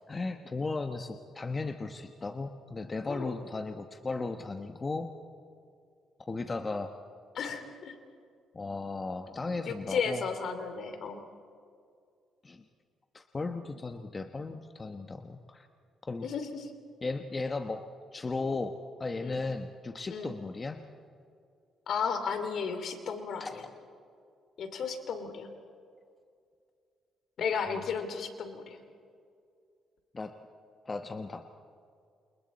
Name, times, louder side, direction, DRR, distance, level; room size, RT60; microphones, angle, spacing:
voice 1, 0.1-5.1 6.3-7.0 8.5-10.2 12.4-12.6 13.1-15.7 16.1-16.3 17.0-20.8 23.4-23.6 27.6-27.8 30.1-30.4 30.8-31.5, left 3 dB, 30° left, 6 dB, 1.2 m, -36 dB
voice 2, 3.1-3.4 7.3-7.9 9.7-11.2 16.2-16.7 19.2-19.4 20.1-20.3 21.9-23.6 24.6-25.5 27.4-28.8, left 6 dB, 65° left, 8 dB, 2.7 m, -34 dB
29.0 x 28.5 x 4.2 m, 2.3 s
cardioid pair, 90°, 0 cm